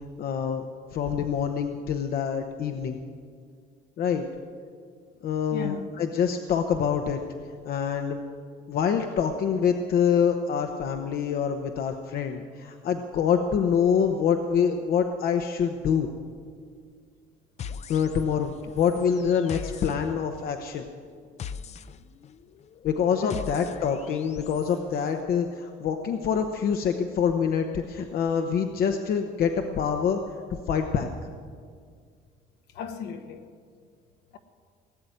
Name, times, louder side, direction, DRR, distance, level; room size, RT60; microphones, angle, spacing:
voice 1, 0.2-0.6 0.9-3.0 4.0-4.2 5.2-7.2 7.6-8.2 8.7-16.1 17.9-20.8 22.8-30.4 30.7-31.1, left 7 dB, 65° left, 1.0 m, -26 dB
voice 2, 5.5-5.9 23.2-23.5 32.7-33.5, left 6 dB, 80° left, 1.4 m, -35 dB
sound 1, 17.6-24.8, left 7 dB, 40° left, 0.5 m, -41 dB
18.5 x 7.7 x 9.7 m
cardioid pair, 110°, 17 cm